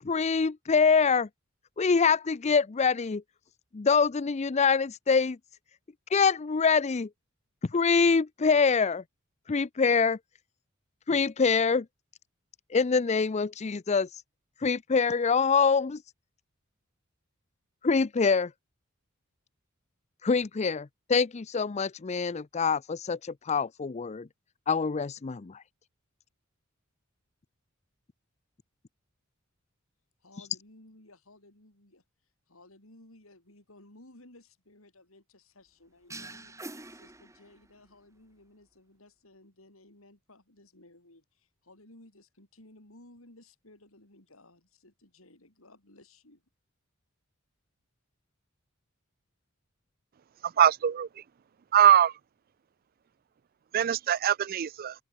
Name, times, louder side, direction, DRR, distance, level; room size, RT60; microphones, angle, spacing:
voice 1, 0.0-1.3 1.8-3.2 3.7-5.4 6.1-7.1 7.6-9.0 9.5-10.2 11.1-11.9 12.7-14.1 14.6-16.0 17.8-18.5 20.2-24.3 24.7-25.6, left 5 dB, 35° left, 0.5 m, -25 dB
voice 2, 30.2-32.0 32.5-46.4, left 1 dB, 80° left, 5.8 m, -57 dB
sound 1, 36.1-37.9, right 2 dB, 15° right, 3.0 m, -45 dB
voice 3, 50.6-51.1 51.7-52.1 53.7-54.9, right 10 dB, 45° right, 0.4 m, -22 dB
open air
head